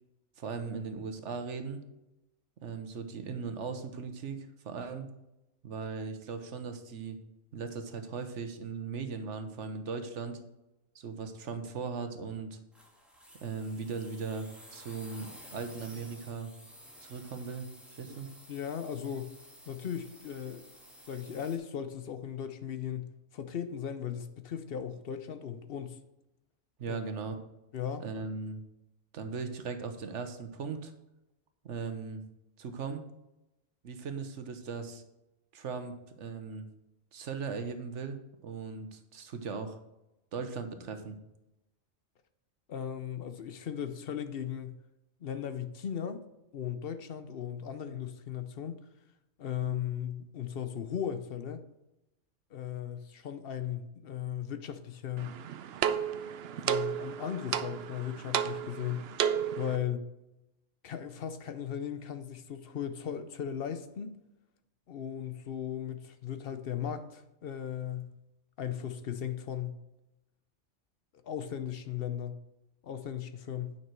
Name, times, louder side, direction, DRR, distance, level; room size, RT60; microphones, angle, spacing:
voice 1, 0.4-1.8 2.6-5.1 5.6-7.2 7.5-10.4 10.9-12.6 13.4-16.5 17.0-18.3 26.8-27.4 28.0-28.6 29.1-30.9 31.6-32.2 32.6-33.0 33.8-35.0 35.5-36.7 37.1-39.8 40.3-41.2, right 5 dB, 85° right, 1.3 m, -38 dB
sound 1, 12.7-21.6, equal, ahead, 1.7 m, -53 dB
voice 2, 18.5-19.3 19.7-20.6 21.1-26.0 26.9-27.0 27.7-28.1 42.7-44.8 45.2-46.2 46.5-48.8 49.4-51.7 52.5-55.4 56.6-59.1 59.6-60.1 60.8-64.2 64.9-68.1 68.6-69.8 71.2-72.4 72.8-73.8, left 9 dB, 60° left, 0.9 m, -37 dB
sound 2, 55.2-59.8, right 9 dB, 65° right, 0.7 m, -33 dB
9.2 x 6.0 x 4.6 m
omnidirectional pair, 1.2 m